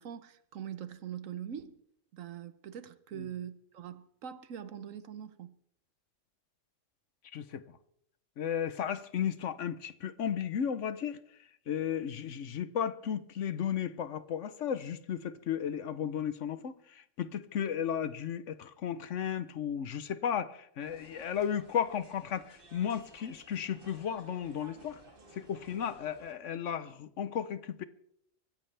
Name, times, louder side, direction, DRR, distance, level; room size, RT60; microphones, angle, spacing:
voice 1, 0.0-1.8 2.1-5.6, right 9 dB, 85° right, 1.3 m, -43 dB
voice 2, 7.3-7.6 8.4-11.2 11.7-25.0 25.3-27.8, left 8 dB, 70° left, 1.2 m, -34 dB
sound 1, 20.8-26.3, right 2 dB, 45° right, 2.1 m, -56 dB
23.5 x 14.5 x 3.4 m
omnidirectional pair, 1.3 m